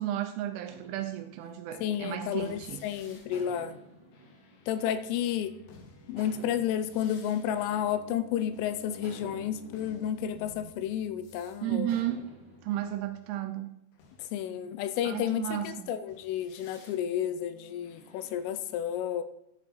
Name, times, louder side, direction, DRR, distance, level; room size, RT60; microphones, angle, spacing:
voice 1, 0.0-2.8 11.6-12.3 12.6-13.7 15.0-15.9, right 12 dB, 80° right, 7 dB, 2.8 m, -33 dB
sound 1, 0.7-2.7 3.3-5.6 6.2-8.4 9.0-11.2 11.9-12.8, right 2 dB, 35° right, 3.8 m, -53 dB
sound 2, 1.0-13.2 13.9-18.4, left 1 dB, 65° left, 3.0 m, -54 dB
voice 2, 1.8-3.8 4.7-5.5 6.1-11.9 14.2-19.2, left 10 dB, 85° left, 12 dB, 3.0 m, -31 dB
11.5 x 6.7 x 4.2 m, 0.79 s
omnidirectional pair, 5.9 m